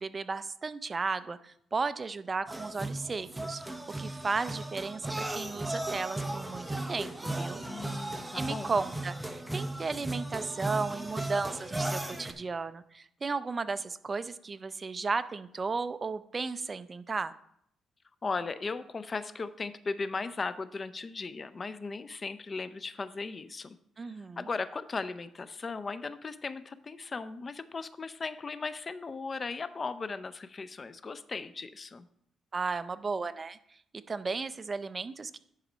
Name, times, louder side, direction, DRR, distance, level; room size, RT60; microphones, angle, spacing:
voice 1, 0.0-7.6 8.3-17.3 24.0-24.5 32.5-33.6 33.9-35.4, right 4 dB, 30° right, 14 dB, 0.5 m, -34 dB
sound 1, 2.5-12.3, right 2 dB, 10° right, 0.9 m, -36 dB
voice 2, 7.7-8.7 18.2-23.8 24.4-32.1, left 4 dB, 35° left, 14 dB, 0.5 m, -37 dB
10.5 x 4.1 x 5.1 m, 0.71 s
cardioid pair, 90°, 0 cm